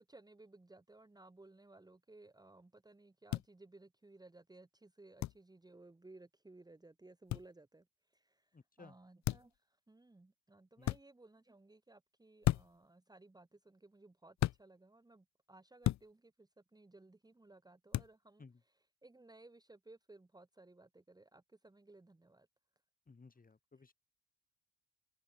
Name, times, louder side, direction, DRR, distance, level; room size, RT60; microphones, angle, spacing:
voice 1, 0.0-7.8 8.1-8.5 8.8-9.6 9.9-18.4 19.0-22.5, right 2 dB, 10° right, 1.8 m, -60 dB
sound 1, 3.3-3.5 5.2-5.4 7.3-7.5 9.2-9.6 10.8-11.0 12.4-12.8 14.4-14.6 15.8-16.1 17.9-18.1, left 14 dB, 50° left, 0.6 m, -34 dB
voice 2, 8.5-9.0 10.8-10.9 18.4-18.6 23.1-23.9, left 4 dB, 25° left, 4.0 m, -58 dB
supercardioid pair, 90°, 37 cm